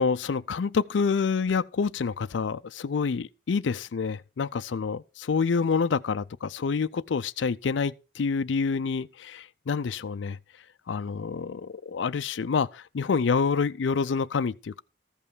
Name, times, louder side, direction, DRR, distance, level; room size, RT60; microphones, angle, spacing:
voice 1, 0.0-10.4 10.9-14.8, left 5 dB, 75° left, 0.4 m, -27 dB
14.5 x 5.5 x 6.1 m
head